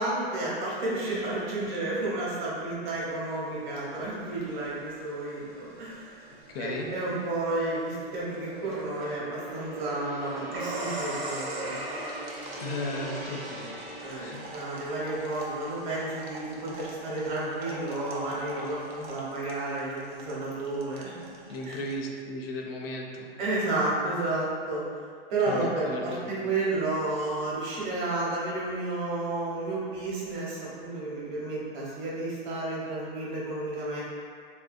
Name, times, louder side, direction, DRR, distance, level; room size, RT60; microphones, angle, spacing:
voice 1, 0.0-6.1 6.6-11.8 14.0-21.0 21.6-21.8 23.4-24.8 25.3-34.0, right 2 dB, 50° right, -6 dB, 1.0 m, -31 dB
sound 1, 2.8-22.0, right 2 dB, 85° right, 0.7 m, -42 dB
Gong, 6.0-18.4 18.7-19.0, right 1 dB, 25° right, 0.5 m, -43 dB
voice 2, 6.5-6.9 12.6-13.8 14.2-14.4 21.5-23.3 25.5-26.3, left 1 dB, 70° left, 1 dB, 0.6 m, -35 dB
3.1 x 2.6 x 2.5 m, 2.1 s
hypercardioid pair, 145°, 31 cm